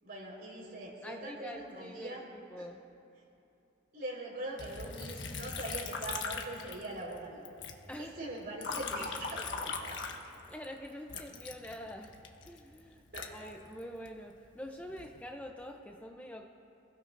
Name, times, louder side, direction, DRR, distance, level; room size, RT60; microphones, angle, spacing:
voice 1, 0.0-2.2 2.6-2.7 3.9-7.5 8.0-10.0 13.1-13.3, right 1 dB, 55° right, -3 dB, 4.5 m, -42 dB
voice 2, 1.0-2.8 7.9-8.2 9.4-9.5 10.4-12.1 12.4-13.0 13.3-16.5, equal, 10° left, 2 dB, 0.6 m, -45 dB
Liquid, 4.6-7.2 7.4-10.6 11.1-14.1 14.7-15.2, left 4 dB, 80° left, 1.3 m, -40 dB
28.0 x 16.5 x 2.6 m, 2.7 s
head